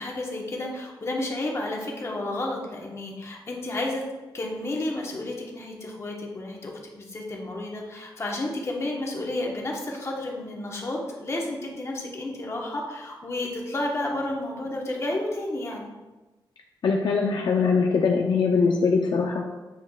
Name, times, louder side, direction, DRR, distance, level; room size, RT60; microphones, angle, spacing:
voice 1, 0.0-4.0 4.3-15.9, left 2 dB, 35° left, -1 dB, 1.2 m, -31 dB
voice 2, 16.8-19.4, left 5 dB, 65° left, 1 dB, 0.5 m, -22 dB
8.9 x 5.0 x 2.4 m, 1.1 s
wide cardioid pair, 130°, 8 cm